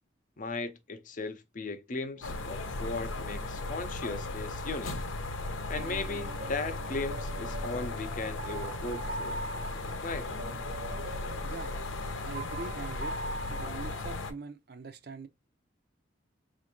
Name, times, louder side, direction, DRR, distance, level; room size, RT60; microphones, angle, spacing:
voice 1, 0.4-4.9 5.7-9.4 10.0-10.3, left 3 dB, 40° left, 0.6 m, -37 dB
sound 1, 2.2-14.3, left 2 dB, 90° left, 0.7 m, -37 dB
sound 2, 2.2-14.0, right 2 dB, 85° right, 1.2 m, -44 dB
voice 2, 11.4-11.7 12.2-13.2 13.5-15.3, right 3 dB, 55° right, 0.5 m, -42 dB
4.2 x 2.5 x 2.9 m
head